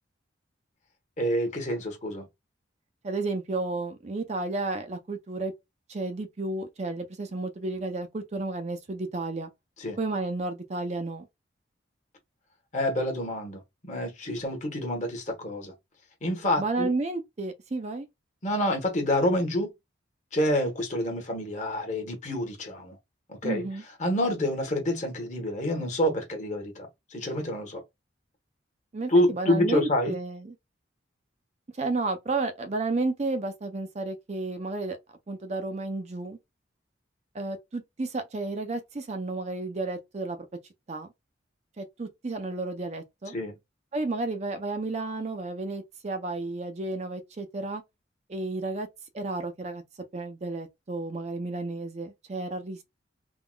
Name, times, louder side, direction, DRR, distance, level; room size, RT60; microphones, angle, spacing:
voice 1, 1.2-2.3 9.8-10.0 12.7-15.7 16.2-16.9 18.4-19.7 20.3-23.0 23.3-23.6 24.0-27.8 29.1-30.1 43.3-43.5, left 1 dB, 40° left, 1.1 m, -27 dB
voice 2, 3.0-5.5 5.9-9.5 10.0-11.3 16.6-18.1 23.4-23.8 28.9-30.5 31.8-35.0 35.3-36.4 37.3-40.4 40.9-41.1 41.8-43.3 43.9-47.8 48.3-48.9 49.1-49.8 50.1-52.8, right 3 dB, 35° right, 0.5 m, -32 dB
3.6 x 2.3 x 2.2 m
head